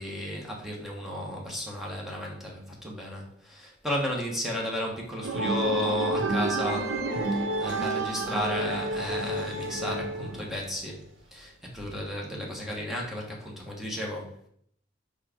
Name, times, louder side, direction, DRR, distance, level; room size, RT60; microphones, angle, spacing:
voice 1, 0.0-7.0 7.3-11.0 11.3-14.5, equal, ahead, -2 dB, 1.3 m, -33 dB
sound 1, 5.2-10.8, right 2 dB, 80° right, 0.8 m, -30 dB
4.9 x 4.8 x 4.4 m, 0.67 s
head